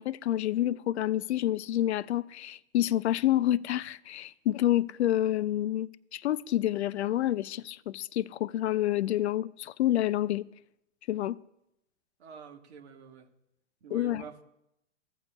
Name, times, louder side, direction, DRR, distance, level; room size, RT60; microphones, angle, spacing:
voice 1, 0.0-10.4 11.1-11.4 13.9-14.2, left 13 dB, 65° left, 0.5 m, -28 dB
voice 2, 12.2-13.3 13.8-14.4, right 6 dB, 65° right, 1.3 m, -47 dB
15.5 x 7.2 x 2.2 m
hypercardioid pair, 125°, 35 cm